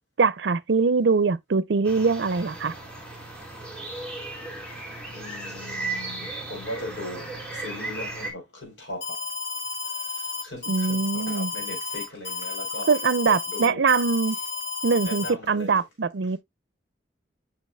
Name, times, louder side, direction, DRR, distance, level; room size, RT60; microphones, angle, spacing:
voice 1, 0.2-2.7 10.7-11.5 12.9-14.4 14.8-16.4, right 4 dB, 75° right, 0.5 m, -22 dB
sound 1, 1.8-8.3, right 2 dB, 5° left, 1.9 m, -36 dB
voice 2, 5.1-9.2 9.8-12.9 13.3-13.8 15.0-15.8, left 1 dB, 90° left, 4.0 m, -39 dB
Alarm, 9.0-15.3, left 4 dB, 65° left, 1.5 m, -32 dB
7.3 x 6.0 x 2.2 m
head